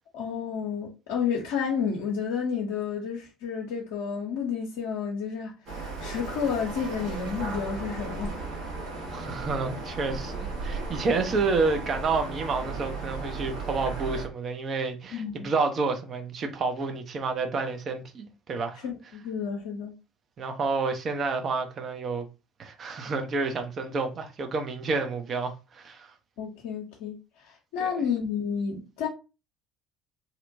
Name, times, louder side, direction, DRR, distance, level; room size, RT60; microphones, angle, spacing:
voice 1, 0.1-8.5 15.1-15.5 18.8-19.9 26.4-29.1, left 6 dB, 70° left, 0.6 m, -31 dB
sound 1, 5.7-14.3, right 3 dB, 65° right, 1.3 m, -35 dB
voice 2, 9.1-18.8 20.4-22.3 22.6-26.1 27.8-27.9, right 4 dB, 45° right, 0.6 m, -29 dB
2.8 x 2.1 x 2.6 m
hypercardioid pair, 60°, 0 cm